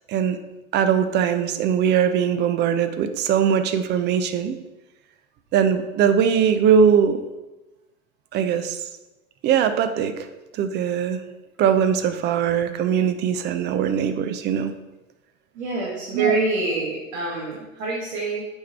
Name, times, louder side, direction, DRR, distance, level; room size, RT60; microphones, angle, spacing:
voice 1, 0.7-4.6 5.5-7.2 8.3-8.8 9.4-10.1 10.6-11.2 11.6-14.7 16.1-16.4, right 8 dB, 25° right, 10 dB, 0.6 m, -21 dB
voice 2, 15.6-18.5, right 3 dB, 60° right, -5 dB, 2.1 m, -26 dB
8.2 x 4.6 x 4.6 m, 1.1 s
figure-of-eight pair, 95°, 42 cm